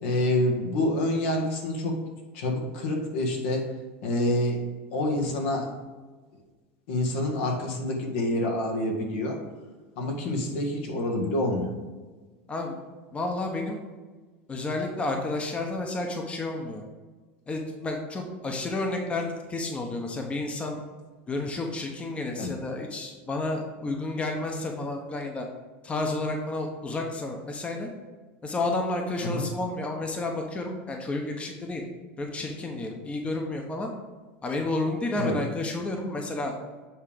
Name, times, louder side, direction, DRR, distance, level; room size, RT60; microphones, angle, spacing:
voice 1, 0.0-2.0 2.3-3.7 4.0-4.6 4.9-5.7 6.9-9.4 10.0-11.7 22.4-22.5 29.2-29.5 35.2-35.4, left 1 dB, 75° left, 1 dB, 1.8 m, -27 dB
voice 2, 13.1-13.8 14.5-16.8 17.5-20.8 21.3-25.4 25.8-27.9 28.4-31.8 32.2-33.9 34.4-36.5, left 2 dB, 15° left, 2 dB, 0.9 m, -31 dB
8.1 x 3.7 x 5.0 m, 1.3 s
supercardioid pair, 125°, 7 cm